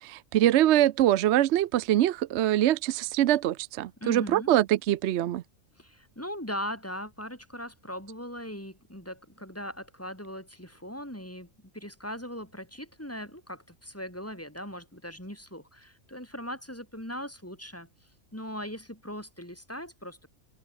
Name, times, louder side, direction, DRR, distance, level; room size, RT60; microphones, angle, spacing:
voice 1, 0.0-5.4, right 13 dB, 65° right, 0.8 m, -24 dB
voice 2, 4.0-4.5 5.8-17.9 18.3-20.3, equal, 10° left, 6.0 m, -39 dB
open air
omnidirectional pair, 1.4 m